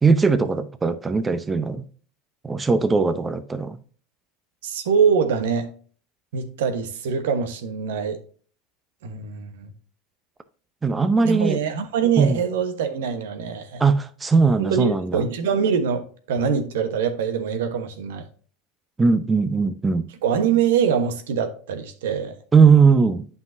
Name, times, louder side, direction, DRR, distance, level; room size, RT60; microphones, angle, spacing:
voice 1, 0.0-1.9 2.4-3.8 10.8-11.6 12.2-12.4 13.8-15.3 19.0-20.1 22.5-23.3, right 5 dB, 20° right, 0.7 m, -19 dB
voice 2, 4.6-5.7 6.3-8.2 9.0-9.7 11.2-13.8 14.6-18.3 20.2-22.3, right 7 dB, 75° right, 1.1 m, -24 dB
9.2 x 5.5 x 2.7 m
hypercardioid pair, 85°, 0 cm